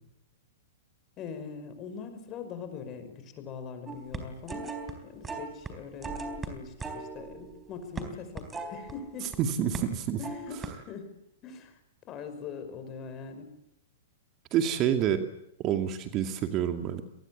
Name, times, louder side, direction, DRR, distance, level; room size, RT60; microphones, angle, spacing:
voice 1, 1.2-4.7 5.0-6.2 6.4-9.3 10.2-11.1 11.4-11.8 12.1-13.5, left 6 dB, 30° left, 8 dB, 5.4 m, -42 dB
sound 1, 3.9-4.9 5.2-5.7 6.0-9.4 9.7-9.9 10.2-10.7, right 3 dB, 15° right, 4.0 m, -38 dB
voice 2, 9.4-10.2 14.5-15.3 15.6-17.0, right 9 dB, 35° right, 7 dB, 2.2 m, -27 dB
26.0 x 20.0 x 8.5 m, 0.79 s
hypercardioid pair, 110°, 0 cm